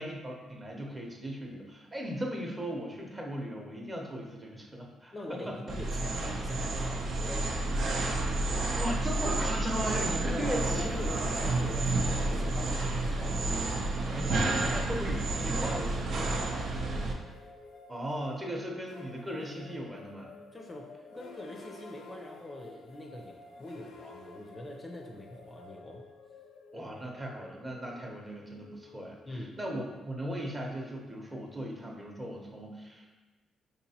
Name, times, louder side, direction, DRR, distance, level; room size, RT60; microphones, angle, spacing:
voice 1, 0.0-5.6 8.8-11.3 14.1-16.2 17.9-20.3 26.7-29.2 29.6-33.1, equal, 20° right, 0 dB, 0.8 m, -37 dB
voice 2, 5.1-8.1 10.3-13.5 16.2-16.7 20.5-26.0 29.3-29.6, left 1 dB, 25° left, 0 dB, 0.5 m, -43 dB
sound 1, 5.7-17.1, right 2 dB, 65° right, 0.5 m, -30 dB
sound 2, 10.6-29.7, left 3 dB, 85° left, 0.5 m, -51 dB
4.8 x 2.9 x 2.8 m, 1.2 s
cardioid pair, 90°, 0 cm